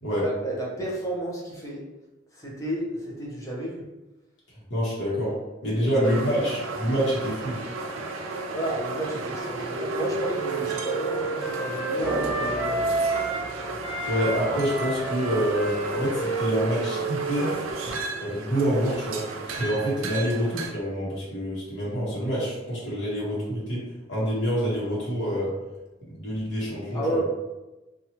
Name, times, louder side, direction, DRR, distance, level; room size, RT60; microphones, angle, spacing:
voice 1, 0.2-1.8 2.3-3.9 5.7-5.9 6.3-6.5 8.5-12.9 26.9-27.2, right 1 dB, 15° left, -4 dB, 0.6 m, -32 dB
voice 2, 4.7-5.3 5.6-7.6 14.1-17.6 18.2-19.3 19.6-23.8 24.1-25.5 26.1-27.2, equal, 65° left, -7 dB, 1.0 m, -26 dB
sound 1, 6.0-20.7, right 3 dB, 90° right, 0.4 m, -34 dB
Wind instrument woodwind instrument, 9.1-13.5 13.8-18.3, right 2 dB, 5° right, 1.2 m, -31 dB
sound 2, 12.0-14.5 14.7-14.8, right 1 dB, 60° right, 0.7 m, -34 dB
2.8 x 2.3 x 2.8 m, 1.1 s
head